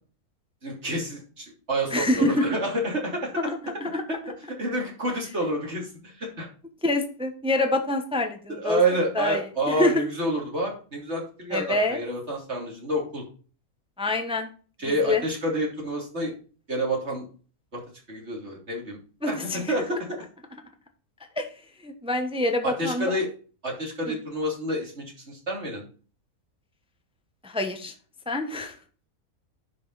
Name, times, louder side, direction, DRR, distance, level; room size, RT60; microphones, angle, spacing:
voice 1, 0.6-3.3 4.1-4.2 4.6-6.5 8.5-13.2 14.8-16.3 16.7-17.2 18.1-19.0 19.2-20.2 22.6-23.3 23.6-25.8, right 1 dB, 45° right, -1 dB, 3.3 m, -28 dB
voice 2, 1.9-2.4 3.4-4.2 6.8-8.8 9.1-10.0 11.5-12.0 14.0-14.5 14.9-15.2 19.2-19.7 21.4-21.5 21.8-23.1 24.1-24.2 27.4-27.9 28.3-28.7, left 2 dB, 5° right, 5 dB, 1.0 m, -26 dB
10.5 x 5.5 x 4.1 m, 0.39 s
omnidirectional pair, 1.6 m